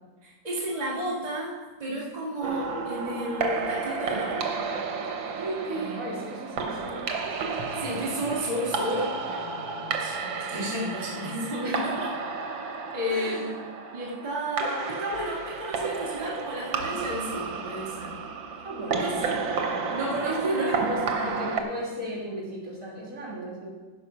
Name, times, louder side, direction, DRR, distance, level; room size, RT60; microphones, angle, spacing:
voice 1, 0.2-4.6 5.7-6.2 7.7-12.1 12.9-13.6 13.9-18.2 18.9-19.3 19.9-20.8 21.1-21.3, equal, 20° right, -6 dB, 2.2 m, -32 dB
sound 1, 2.4-21.6, right 4 dB, 80° right, 1.9 m, -32 dB
voice 2, 5.3-7.1 7.6-7.8 8.1-8.2 11.6-11.9 13.1-13.4 18.6-19.1 20.2-23.7, right 1 dB, 45° right, -5 dB, 3.2 m, -34 dB
15.5 x 5.6 x 5.7 m, 1.3 s
omnidirectional pair, 2.1 m